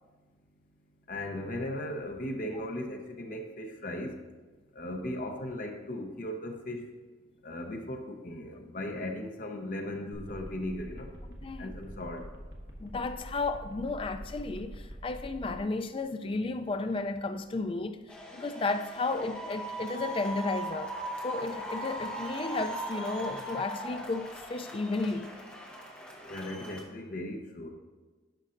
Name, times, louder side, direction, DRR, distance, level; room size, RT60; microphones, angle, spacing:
voice 1, 1.1-4.1 4.8-6.8 7.4-11.1 11.6-12.2 26.3-27.7, left 1 dB, 45° left, 0.8 m, -37 dB
sound 1, 10.1-15.6, equal, 60° right, 1.2 m, -45 dB
voice 2, 11.4-11.8 12.8-20.9 21.2-25.3, left 3 dB, 30° left, 0.3 m, -33 dB
sound 2, 18.1-26.8, right 1 dB, 5° left, 0.9 m, -39 dB
11.5 x 5.4 x 2.5 m
head